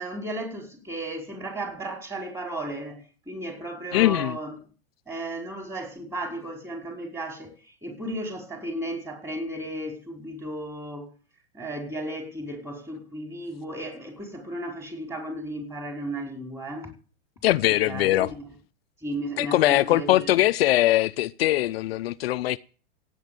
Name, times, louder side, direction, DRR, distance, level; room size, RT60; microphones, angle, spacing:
voice 1, 0.0-4.6 5.1-11.1 11.5-16.9 17.8-18.4 19.0-20.3, right 1 dB, 10° right, 5.0 m, -34 dB
voice 2, 3.9-4.4 17.4-18.3 19.4-22.6, left 15 dB, 70° left, 0.6 m, -21 dB
16.0 x 9.2 x 7.1 m
hypercardioid pair, 120°, 32 cm